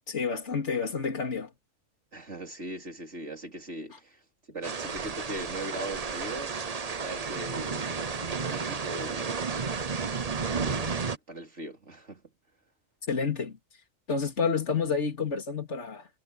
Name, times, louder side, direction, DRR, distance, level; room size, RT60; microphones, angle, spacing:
voice 1, 0.1-1.5 13.1-13.6 14.1-16.1, left 5 dB, 60° left, 3.1 m, -29 dB
voice 2, 2.1-4.2 4.5-6.7 7.0-9.5 10.5-12.2, right 2 dB, 60° right, 4.3 m, -40 dB
sound 1, 4.6-11.2, right 5 dB, 35° right, 0.9 m, -32 dB
omnidirectional pair, 1.4 m